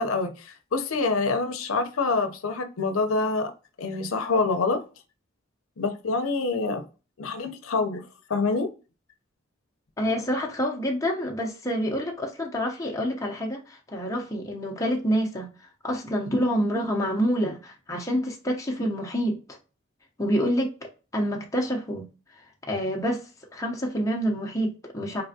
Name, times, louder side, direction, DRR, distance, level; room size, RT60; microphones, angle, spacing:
voice 1, 0.0-3.5 3.8-4.8 5.8-6.8 7.2-8.0 8.3-8.7, left 3 dB, 80° left, 0.6 m, -26 dB
voice 2, 10.0-15.5 15.8-19.6 20.2-20.8 21.1-22.4 22.7-23.2 23.5-25.2, equal, 15° left, 0.6 m, -27 dB
4.1 x 3.4 x 2.7 m
head